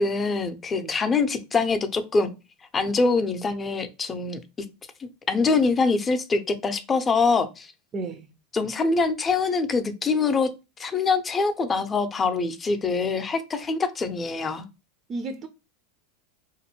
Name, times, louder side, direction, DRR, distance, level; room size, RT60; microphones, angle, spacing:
voice 1, 0.0-2.3 2.7-4.4 5.0-7.7 8.5-10.5 10.8-14.7, left 4 dB, 25° left, 0.5 m, -24 dB
voice 2, 7.9-8.3 15.1-15.5, right 3 dB, 35° right, 0.4 m, -33 dB
2.7 x 2.5 x 2.9 m
hypercardioid pair, 90°, 0 cm